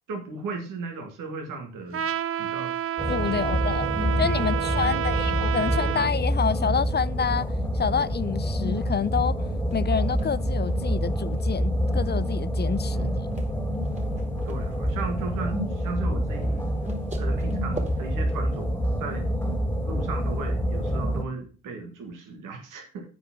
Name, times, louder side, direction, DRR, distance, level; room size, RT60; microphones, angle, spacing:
voice 1, 0.1-2.0 2.4-2.7 3.3-3.6 4.3-4.7 12.9-13.3 14.5-16.7 17.2-19.3 19.9-23.1, right 4 dB, 90° right, 1.8 m, -36 dB
Trumpet, 1.9-6.1, right 11 dB, 45° right, 0.5 m, -29 dB
sound 1, 3.0-21.2, equal, 5° left, 1.7 m, -27 dB
voice 2, 3.1-3.9 4.2-7.5 7.7-9.4 9.7-13.3, left 6 dB, 35° left, 0.4 m, -28 dB
sound 2, 9.7-18.1, right 1 dB, 20° right, 2.3 m, -46 dB
8.1 x 4.9 x 5.9 m
supercardioid pair, 55°, 31 cm